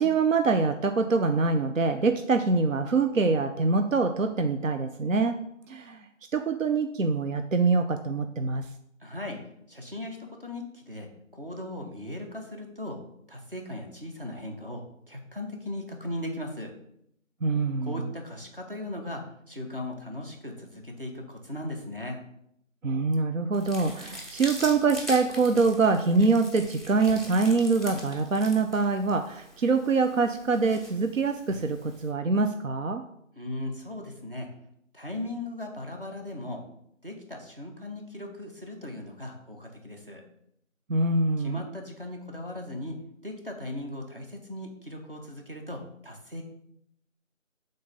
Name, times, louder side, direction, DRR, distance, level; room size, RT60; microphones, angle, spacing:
voice 1, 0.0-5.4 5.7-6.1 6.3-8.6 17.4-18.1 22.8-33.0 40.9-41.6, right 4 dB, 75° right, 7 dB, 0.6 m, -24 dB
voice 2, 9.0-9.4 9.7-13.0 13.3-16.7 17.8-22.2 33.4-34.5 34.9-36.6 37.0-40.2 41.4-46.4, left 1 dB, 40° right, 2 dB, 1.1 m, -38 dB
sound 1, 23.5-32.1, equal, ahead, 0.7 m, -43 dB
5.5 x 3.9 x 5.3 m, 0.74 s
figure-of-eight pair, 180°, 40 cm